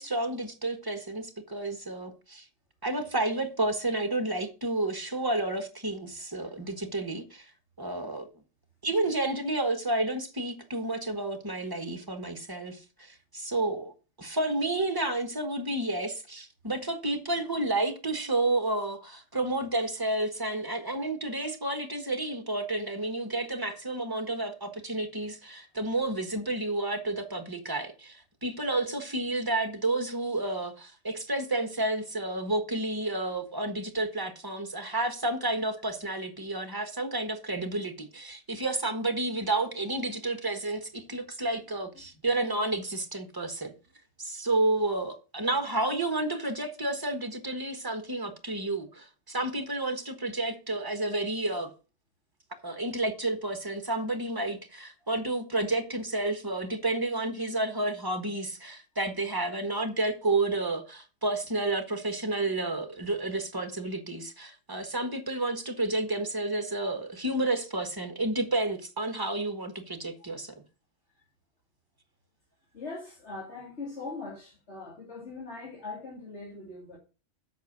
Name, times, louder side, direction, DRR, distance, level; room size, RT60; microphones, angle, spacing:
voice 1, 0.0-2.5 2.8-7.5 7.8-8.3 8.8-13.9 14.2-43.7 44.2-51.7 52.6-70.5, right 2 dB, 20° right, 1.4 m, -31 dB
voice 2, 72.7-77.0, left 3 dB, 80° left, 2.9 m, -41 dB
8.1 x 6.2 x 6.0 m
omnidirectional pair, 1.1 m